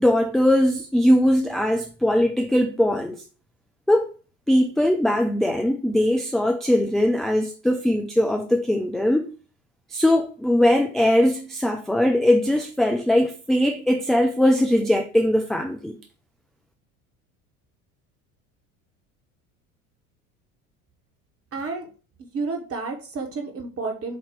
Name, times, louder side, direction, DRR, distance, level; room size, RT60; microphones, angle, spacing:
voice 1, 0.0-3.2 3.9-4.1 4.5-9.3 9.9-16.0, left 1 dB, ahead, 0.5 m, -20 dB
voice 2, 21.5-21.9 22.3-24.2, right 3 dB, 30° right, 1.7 m, -30 dB
7.4 x 2.9 x 4.6 m
figure-of-eight pair, 70°, 43 cm